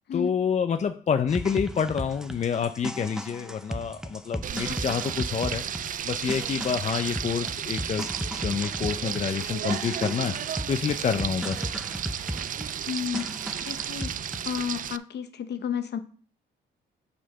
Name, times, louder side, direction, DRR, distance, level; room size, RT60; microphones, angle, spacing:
voice 1, 0.1-5.6 6.0-8.1 8.4-11.7, left 7 dB, 35° left, 8 dB, 0.5 m, -28 dB
sound 1, 1.3-14.6, equal, 5° right, 0.7 m, -36 dB
Frying (food), 4.4-15.0, right 9 dB, 45° right, 0.4 m, -33 dB
voice 2, 12.9-13.3 13.6-14.1 14.4-16.0, left 8 dB, 60° left, 9 dB, 1.0 m, -31 dB
7.5 x 4.3 x 5.5 m, 0.43 s
cardioid pair, 90°, 20 cm